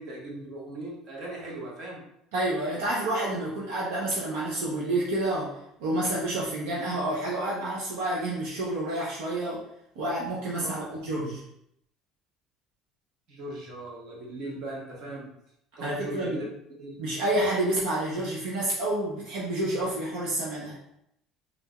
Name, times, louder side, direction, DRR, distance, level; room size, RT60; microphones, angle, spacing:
voice 1, 0.0-2.0 10.6-10.8 13.3-15.3 15.8-16.5 16.8-17.0, right 1 dB, 60° right, -3 dB, 1.2 m, -38 dB
voice 2, 2.3-9.6 10.0-11.4 15.8-16.4 17.0-20.8, right 1 dB, 85° right, -5 dB, 0.7 m, -29 dB
4.5 x 2.6 x 2.3 m, 0.76 s
supercardioid pair, 100°, 0 cm